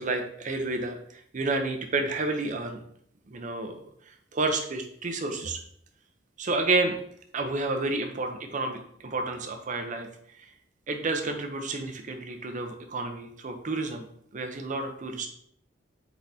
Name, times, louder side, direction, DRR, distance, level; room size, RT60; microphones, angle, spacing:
voice 1, 0.0-2.8 3.3-3.8 4.3-5.6 6.4-7.0 7.3-10.1 10.4-10.5 10.9-14.1 14.3-15.3, right 3 dB, 45° right, 5 dB, 0.6 m, -30 dB
4.6 x 4.2 x 2.7 m, 0.67 s
head